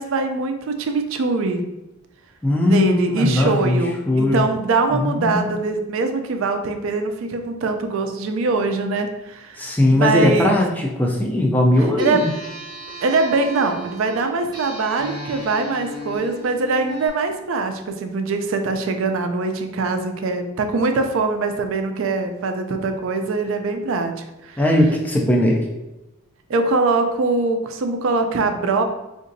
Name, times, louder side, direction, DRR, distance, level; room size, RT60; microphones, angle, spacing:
voice 1, 0.0-1.6 2.6-9.6 9.9-10.6 12.0-12.3 13.0-24.6 26.5-28.8, right 3 dB, 65° right, 6 dB, 0.4 m, -22 dB
voice 2, 2.4-3.8 4.1-4.5 4.9-5.5 9.6-12.3 24.6-25.6, left 1 dB, 10° left, -1 dB, 0.3 m, -19 dB
sound 1, 12.0-17.1, equal, 20° right, 0.7 m, -36 dB
3.8 x 2.5 x 2.6 m, 0.97 s
head